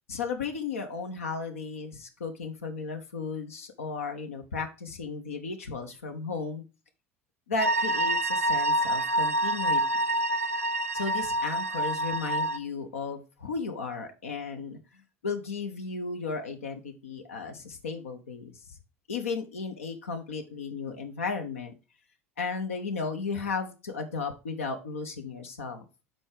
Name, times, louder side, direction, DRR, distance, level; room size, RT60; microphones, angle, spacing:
voice 1, 0.1-6.6 7.5-9.8 10.9-14.8 15.2-18.7 19.1-21.7 22.4-25.8, left 4 dB, 75° left, 5 dB, 0.8 m, -34 dB
sound 1, 7.6-12.6, right 1 dB, 85° right, 0.4 m, -27 dB
6.4 x 4.6 x 4.8 m, 0.30 s
figure-of-eight pair, 70°, 7 cm